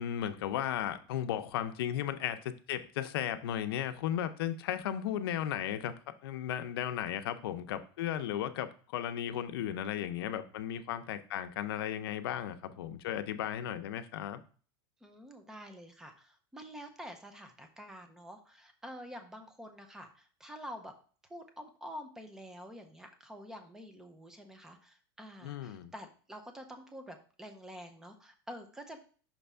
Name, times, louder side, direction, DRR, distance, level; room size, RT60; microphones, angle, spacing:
voice 1, 0.0-5.9 6.2-14.4 25.4-25.9, left 10 dB, 70° left, 9 dB, 0.7 m, -35 dB
voice 2, 15.0-20.9 21.3-29.0, equal, 5° right, 6 dB, 0.5 m, -48 dB
6.0 x 3.4 x 5.4 m, 0.41 s
supercardioid pair, 170°, 13 cm